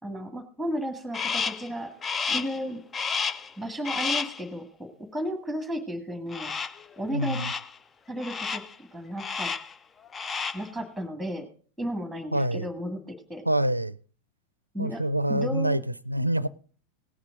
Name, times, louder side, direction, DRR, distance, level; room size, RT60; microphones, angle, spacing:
voice 1, 0.0-1.9 2.3-2.8 3.6-6.5 7.0-7.4 8.1-9.5 10.5-11.5 11.8-13.4 14.7-15.0 15.3-15.8, equal, ahead, 1.8 m, -34 dB
Crow, 1.1-1.7 2.0-2.6 2.9-3.5 3.8-4.4 6.3-6.8 7.2-7.7 8.2-8.7 9.2-9.7 10.1-10.7, left 5 dB, 20° left, 0.4 m, -31 dB
voice 2, 7.1-7.5 12.3-12.7 13.5-14.0 14.8-16.5, right 1 dB, 85° right, 0.5 m, -26 dB
17.5 x 8.7 x 3.8 m
figure-of-eight pair, 90°, 0 cm